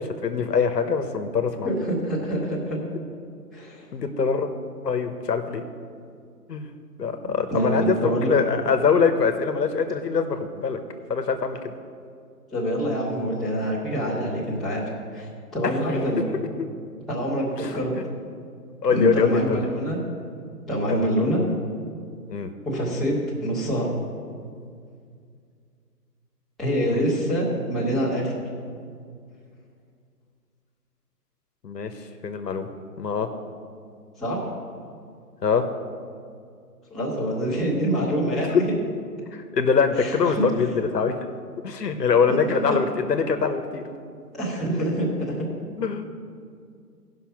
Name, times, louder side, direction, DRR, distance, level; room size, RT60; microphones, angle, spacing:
voice 1, 0.0-1.7 3.9-4.5 4.8-5.6 6.5-6.7 7.0-10.8 11.1-11.7 16.3-16.5 17.6-17.7 18.8-19.7 20.9-21.1 22.3-22.5 26.9-27.0 31.6-31.9 32.2-32.7 33.0-33.3 35.4-35.7 38.5-38.6 39.3-41.2 41.6-43.8 45.8-46.1, left 5 dB, 80° left, 7 dB, 1.1 m, -23 dB
voice 2, 1.6-2.8 3.5-3.8 7.2-8.3 12.5-14.8 15.1-16.2 17.1-17.9 18.9-20.0 20.7-21.4 22.6-23.9 26.6-28.3 34.2-34.5 36.9-38.6 40.0-40.4 42.3-42.8 44.3-45.4, right 1 dB, ahead, -10 dB, 1.7 m, -26 dB
15.5 x 5.7 x 5.9 m, 2.2 s
hypercardioid pair, 150°, 48 cm